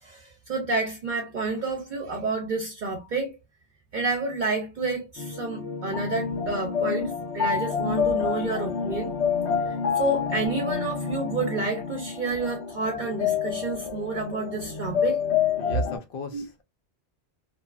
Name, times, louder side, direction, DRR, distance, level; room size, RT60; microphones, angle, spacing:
voice 1, 0.0-3.4 3.9-9.2 9.7-15.3 16.3-16.4, right 3 dB, 50° right, 0.8 m, -29 dB
sound 1, 5.2-16.0, left 7 dB, 90° left, 1.1 m, -28 dB
voice 2, 15.6-16.6, left 5 dB, 65° left, 0.7 m, -37 dB
2.6 x 2.3 x 2.3 m
omnidirectional pair, 1.1 m